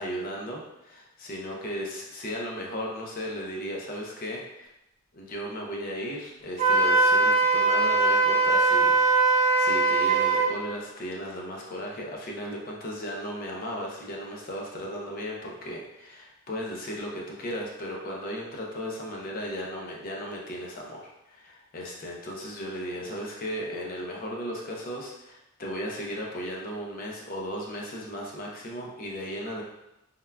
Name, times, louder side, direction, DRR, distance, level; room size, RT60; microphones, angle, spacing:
voice 1, 0.0-4.7 5.1-29.6, equal, 40° left, -2 dB, 0.5 m, -36 dB
Wind instrument woodwind instrument, 6.6-10.5, right 3 dB, 30° right, 0.4 m, -21 dB
3.5 x 2.2 x 2.2 m, 0.91 s
head